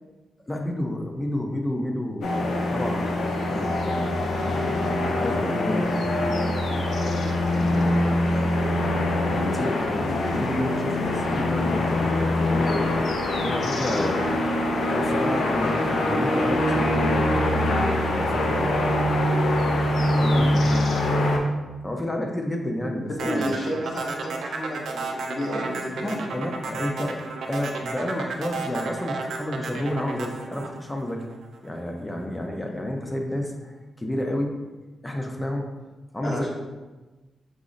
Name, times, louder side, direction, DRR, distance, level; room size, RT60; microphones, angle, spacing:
voice 1, 0.5-3.0 3.3-4.2 4.5-6.5 7.5-8.2 9.1-13.0 13.4-14.3 14.9-19.4 19.6-20.9 21.8-23.6 25.9-27.2 27.5-31.2 31.6-34.6 35.0-35.7 36.1-36.5, left 1 dB, 15° left, 2 dB, 0.6 m, -30 dB
sound 1, 2.2-21.4, left 1 dB, 80° left, 0.6 m, -24 dB
voice 2, 23.2-26.2 36.2-36.5, equal, 45° left, -3 dB, 0.9 m, -31 dB
sound 2, 23.2-31.6, right 4 dB, 85° right, 0.5 m, -32 dB
4.9 x 2.0 x 3.8 m, 1.2 s
cardioid pair, 100°, 0 cm